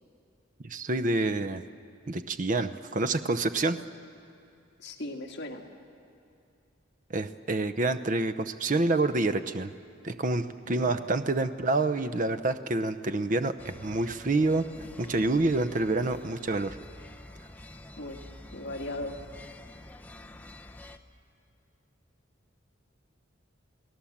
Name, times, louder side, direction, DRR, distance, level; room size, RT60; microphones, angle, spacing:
voice 1, 0.6-1.6 2.1-3.8 7.1-9.7 10.0-14.7 15.0-16.8, right 2 dB, 40° right, 10 dB, 0.7 m, -27 dB
voice 2, 4.8-5.6 10.7-10.9 18.0-18.2 18.5-19.2, left 1 dB, 55° left, 2 dB, 1.8 m, -37 dB
sound 1, 13.6-21.0, left 1 dB, 10° left, 0.7 m, -48 dB
28.5 x 18.5 x 7.3 m, 2.6 s
head